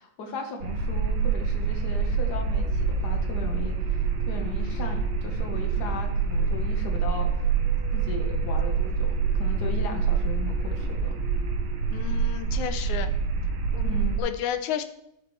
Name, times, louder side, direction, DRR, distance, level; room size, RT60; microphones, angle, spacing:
voice 1, 0.0-7.5 7.9-11.2 13.8-14.2, left 3 dB, 65° left, 3 dB, 1.0 m, -37 dB
sound 1, 0.6-14.2, right 5 dB, 90° right, 2.5 m, -26 dB
sound 2, 2.6-13.7, right 1 dB, 20° left, 0.6 m, -48 dB
voice 2, 11.9-13.1 13.7-14.8, left 10 dB, 85° left, 9 dB, 2.0 m, -32 dB
12.0 x 6.9 x 3.1 m, 0.81 s
omnidirectional pair, 3.5 m